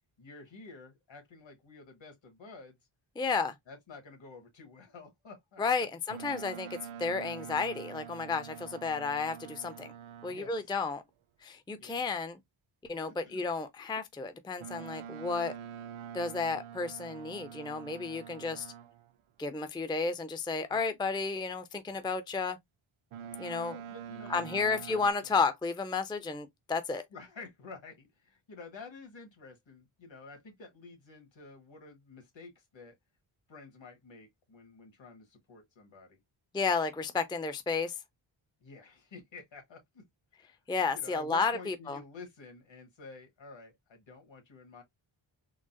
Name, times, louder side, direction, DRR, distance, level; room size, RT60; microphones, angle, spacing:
voice 1, 0.2-2.8 3.7-5.9 10.3-10.6 11.8-12.0 13.1-13.5 20.7-20.9 23.7-25.3 27.1-32.9 33.5-36.2 38.6-40.1 40.4-40.6 40.9-44.8, left 3 dB, 65° left, 1.5 m, -50 dB
voice 2, 3.2-3.5 5.6-9.9 10.2-11.0 11.4-12.4 12.9-15.5 16.1-18.7 19.4-22.6 23.4-23.7 24.3-27.0 36.5-38.0 40.7-42.0, left 4 dB, 10° left, 0.4 m, -32 dB
Boat Water vehicle, 6.1-10.6 14.6-19.1 23.1-25.1, right 8 dB, 80° right, 0.6 m, -45 dB
3.8 x 2.0 x 2.5 m
cardioid pair, 70°, 49 cm